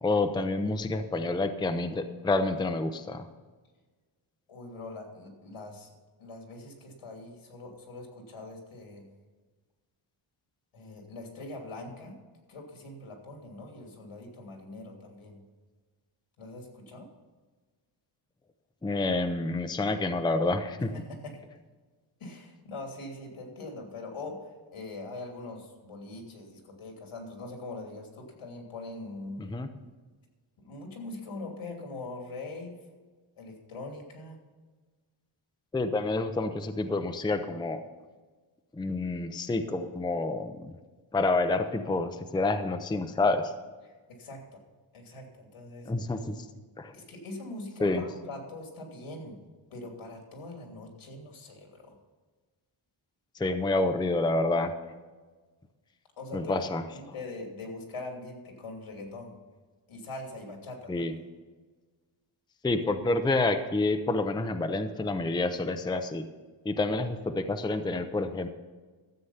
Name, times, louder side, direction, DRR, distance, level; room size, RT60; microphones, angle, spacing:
voice 1, 0.0-3.3 18.8-20.9 29.4-29.7 35.7-37.8 38.7-40.7 41.1-43.5 45.9-46.4 46.8-46.9 47.8-48.0 53.4-54.7 56.3-57.1 60.9-61.1 62.6-66.3 66.6-68.5, left 2 dB, 10° left, 8 dB, 0.5 m, -28 dB
voice 2, 4.5-5.9 6.2-9.1 10.7-12.1 12.5-15.4 16.4-17.1 20.8-21.4 22.2-24.5 24.7-29.5 30.6-32.8 33.4-34.4 43.8-44.6 44.9-45.9 46.9-49.4 49.7-52.0 56.2-56.6 56.9-59.4 59.9-61.0, left 2 dB, 85° left, 2 dB, 3.0 m, -42 dB
13.0 x 8.0 x 5.7 m, 1.4 s
wide cardioid pair, 170°, 49 cm